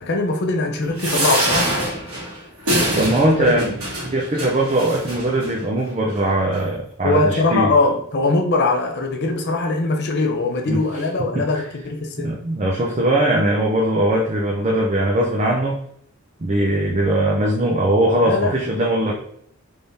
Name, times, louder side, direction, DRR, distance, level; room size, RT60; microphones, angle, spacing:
voice 1, 0.0-1.8 3.5-3.6 7.0-12.4 18.3-18.6 19.0-19.1, left 3 dB, 50° left, 3 dB, 0.6 m, -21 dB
sound 1, 1.0-5.5 6.2-6.3 6.5-6.6, right 1 dB, 75° right, 1.5 m, -24 dB
voice 2, 2.9-7.7 10.7-10.8 11.3-11.4 12.2-15.8 16.4-19.1, right 1 dB, 30° right, -1 dB, 0.5 m, -20 dB
3.6 x 3.4 x 2.7 m, 0.64 s
head